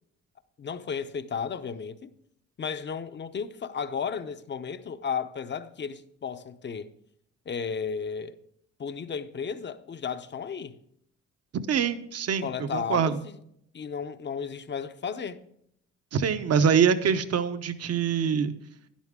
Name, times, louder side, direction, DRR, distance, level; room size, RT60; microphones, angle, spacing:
voice 1, 0.6-2.1 2.6-6.9 7.5-8.4 8.8-10.8 12.4-13.4 13.7-15.4, left 6 dB, 35° left, 0.8 m, -34 dB
voice 2, 11.7-13.2 16.1-18.5, right 7 dB, 55° right, 0.9 m, -24 dB
12.5 x 10.5 x 3.7 m
cardioid pair, 90°, 30 cm